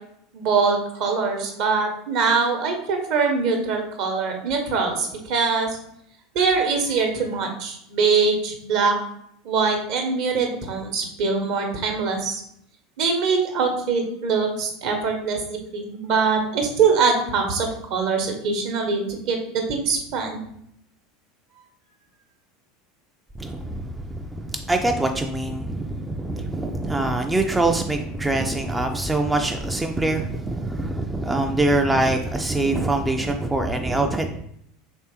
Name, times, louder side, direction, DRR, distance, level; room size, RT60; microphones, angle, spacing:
voice 1, 0.3-5.7 6.3-9.0 9.4-12.4 13.0-20.4, right 5 dB, 50° right, 3 dB, 0.9 m, -23 dB
voice 2, 23.4-34.4, right 2 dB, 10° right, 4 dB, 0.4 m, -24 dB
4.3 x 3.2 x 2.9 m, 0.73 s
figure-of-eight pair, 75°, 0 cm